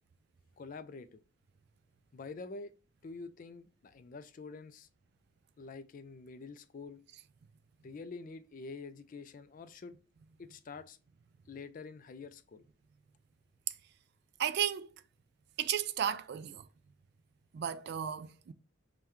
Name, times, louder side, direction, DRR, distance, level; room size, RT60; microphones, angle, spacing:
voice 1, 0.6-1.2 2.1-2.7 3.0-4.9 5.6-7.0 7.8-10.0 10.4-11.0 11.5-12.7, left 4 dB, 40° left, 0.3 m, -47 dB
voice 2, 14.4-14.9 15.6-16.7 17.5-18.5, right 9 dB, 55° right, 0.3 m, -34 dB
5.5 x 2.2 x 2.9 m
head